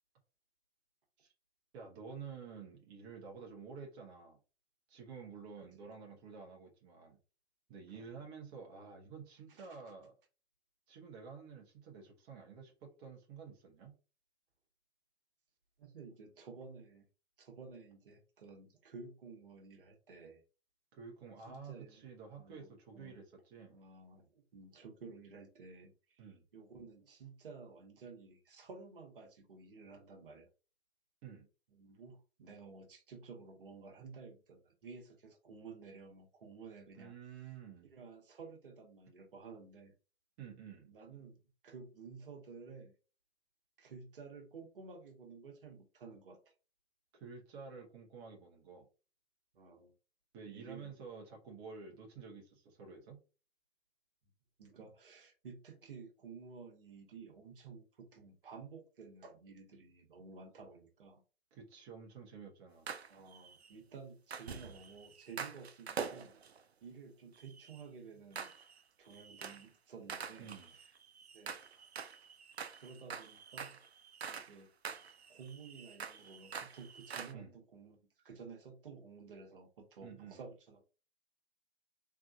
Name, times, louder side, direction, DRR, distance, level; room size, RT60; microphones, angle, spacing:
voice 1, 1.7-4.4 4.9-7.2 7.7-10.1 10.9-14.0 20.9-23.8 26.2-26.5 31.2-31.5 36.9-37.9 40.4-40.9 47.1-48.9 50.3-53.2 61.5-62.9 70.4-70.7 77.3-77.6 80.0-80.4, right 5 dB, 25° right, -1 dB, 0.9 m, -50 dB
voice 2, 5.6-6.0 7.9-8.2 9.5-9.8 15.8-17.1 17.4-20.4 21.5-22.1 22.4-23.2 23.7-26.3 26.5-30.5 31.7-37.1 37.8-39.9 40.9-41.4 41.6-42.9 43.8-46.4 49.5-49.9 50.4-50.9 54.6-61.2 63.1-66.3 66.8-68.5 69.0-70.5 71.3-71.9 72.8-73.8 74.3-74.7 75.3-80.9, right 5 dB, 55° right, 4 dB, 1.2 m, -53 dB
sound 1, 62.9-63.7 64.3-66.6 67.4-67.8 68.4-68.8 69.1-69.7 70.1-74.6 74.8-77.3, right 6 dB, 75° right, 0.6 m, -46 dB
3.8 x 3.6 x 2.3 m, 0.34 s
figure-of-eight pair, 120°, 32 cm